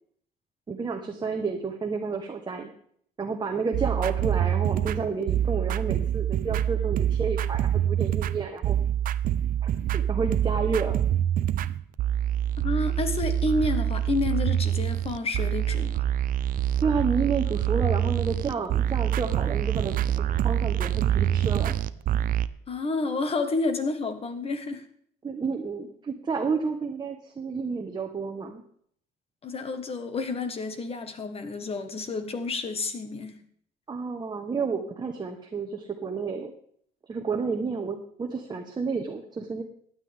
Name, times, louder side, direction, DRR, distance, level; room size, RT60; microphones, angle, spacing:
voice 1, 0.7-2.7 3.2-8.8 9.9-11.0 16.8-21.8 25.2-28.6 33.9-36.5 37.1-39.6, right 5 dB, 25° right, 3 dB, 1.1 m, -30 dB
sound 1, 3.7-22.5, right 10 dB, 55° right, 0.5 m, -26 dB
voice 2, 12.6-16.0 22.7-24.8 29.4-33.4, left 3 dB, 35° left, 8 dB, 1.5 m, -30 dB
15.5 x 10.0 x 3.6 m, 0.63 s
cardioid pair, 110°, 17 cm